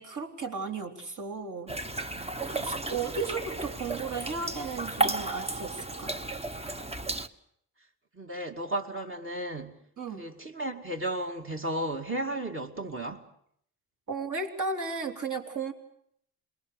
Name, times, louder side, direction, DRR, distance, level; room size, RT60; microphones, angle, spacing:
voice 1, 0.0-1.8 2.5-6.2 10.0-10.2 14.1-15.7, right 4 dB, 45° right, 4.1 m, -34 dB
sound 1, 1.7-7.3, right 2 dB, 15° right, 1.1 m, -33 dB
voice 2, 2.5-2.9 8.1-9.8 10.2-13.2, right 1 dB, 30° right, 2.5 m, -34 dB
27.5 x 21.5 x 6.6 m
cardioid pair, 100°, 42 cm